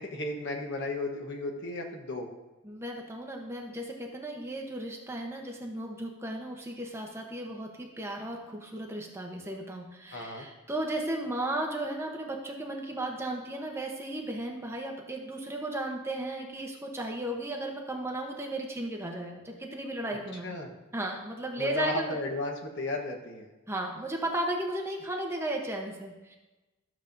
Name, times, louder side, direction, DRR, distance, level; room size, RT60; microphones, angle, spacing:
voice 1, 0.0-2.3 10.1-10.5 20.3-20.7 21.6-23.5, left 2 dB, 55° left, 2 dB, 1.1 m, -34 dB
voice 2, 2.6-20.6 20.9-22.1 23.7-26.4, right 1 dB, 10° right, 1 dB, 0.8 m, -35 dB
12.5 x 7.0 x 2.6 m, 1.1 s
head